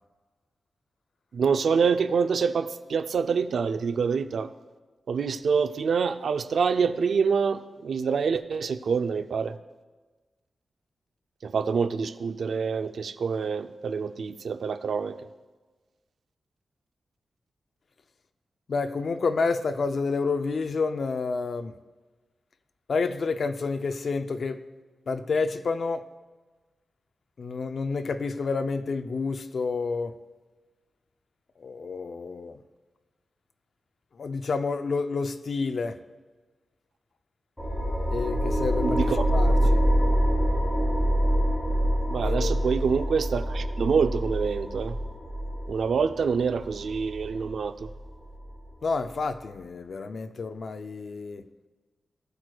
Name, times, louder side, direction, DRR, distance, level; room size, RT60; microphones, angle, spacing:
voice 1, 1.3-4.5 5.1-9.5 11.4-15.2 38.8-39.2 39.5-39.6 42.1-45.0 45.7-47.9, right 5 dB, 75° right, 0.4 m, -26 dB
voice 2, 18.7-21.7 22.9-24.6 25.1-26.0 27.4-30.2 31.6-32.6 34.2-36.0 38.1-39.0 39.3-39.8 42.2-42.5 48.8-51.4, left 4 dB, 60° left, 0.4 m, -29 dB
sound 1, 37.6-48.6, equal, 10° left, 2.6 m, -26 dB
18.0 x 6.3 x 2.3 m
wide cardioid pair, 105°, 0 cm